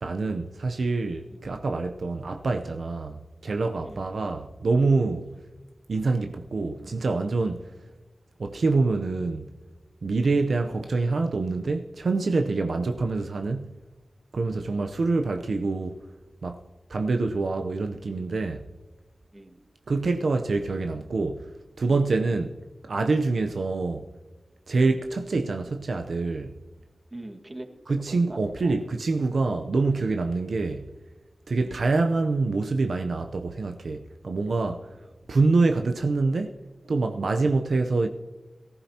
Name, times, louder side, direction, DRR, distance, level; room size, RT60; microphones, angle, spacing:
voice 1, 0.0-5.3 5.9-7.7 8.4-9.5 10.0-13.8 14.3-16.0 16.4-16.6 16.9-18.7 19.9-21.5 21.8-22.6 22.8-24.1 24.7-26.6 27.9-30.9 31.5-35.0 35.3-36.6 36.9-38.1, right 3 dB, 75° right, 0.7 m, -26 dB
voice 2, 19.3-19.6 27.1-28.8 31.6-31.9 37.4-37.6, right 1 dB, 30° right, 1.8 m, -44 dB
22.0 x 14.5 x 2.9 m
wide cardioid pair, 85°, 0 cm